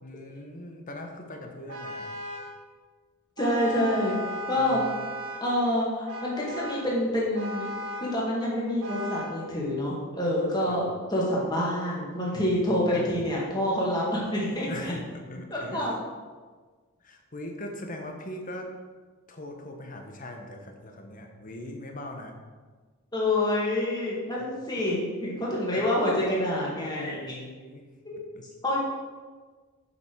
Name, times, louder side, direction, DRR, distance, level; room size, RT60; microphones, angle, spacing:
voice 1, 0.0-2.1 4.6-5.1 10.7-10.8 12.7-13.1 14.7-16.0 17.0-18.7 19.3-22.4 26.9-27.8 28.3-28.5, left 1 dB, 40° left, 3 dB, 1.2 m, -40 dB
Vehicle horn car horn honking, 1.7-2.6 3.4-5.5 6.1-6.9 7.3-8.2 8.8-9.4, left 1 dB, 85° right, 1.2 m, -36 dB
voice 2, 3.4-4.2 4.5-4.8 5.4-7.7 8.0-14.9 15.5-16.0 23.1-27.2 28.1-28.2 28.6-28.8, left 1 dB, 20° left, -5 dB, 2.2 m, -27 dB
7.8 x 5.7 x 6.3 m, 1.4 s
head